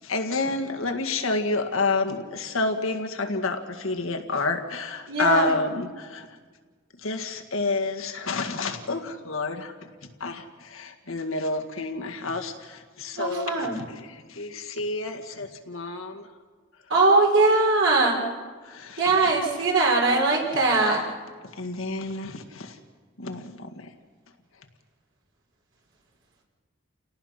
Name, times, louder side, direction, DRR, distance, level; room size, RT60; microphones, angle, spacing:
voice 1, 0.0-6.4 7.0-9.7 10.2-16.3 18.6-19.3 21.4-22.8 23.2-23.9, left 3 dB, 85° left, 3 dB, 1.9 m, -29 dB
voice 2, 5.1-5.5 13.2-13.8 16.9-18.2 19.0-21.0, right 3 dB, 65° right, -1 dB, 4.3 m, -21 dB
29.5 x 18.0 x 5.8 m, 1.5 s
head